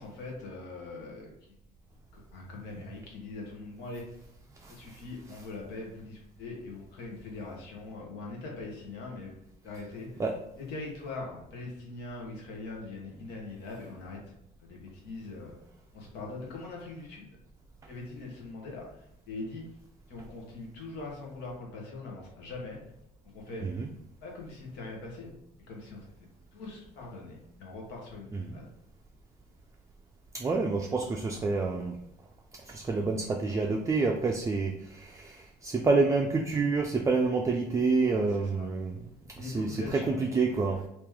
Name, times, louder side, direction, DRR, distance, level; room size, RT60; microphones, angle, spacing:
voice 1, 0.0-1.5 2.1-4.0 4.7-9.4 9.6-10.2 10.6-14.2 14.6-15.6 15.9-17.3 17.9-19.7 20.1-22.8 23.2-23.6 24.2-25.3 25.6-26.1 26.5-28.7 38.1-38.7 39.3-40.3, left 3 dB, 90° left, -2 dB, 1.3 m, -42 dB
voice 2, 30.3-32.0 32.6-39.0 39.4-40.9, right 3 dB, 20° right, 2 dB, 0.3 m, -28 dB
3.0 x 3.0 x 3.6 m, 0.78 s
cardioid pair, 110°, 17 cm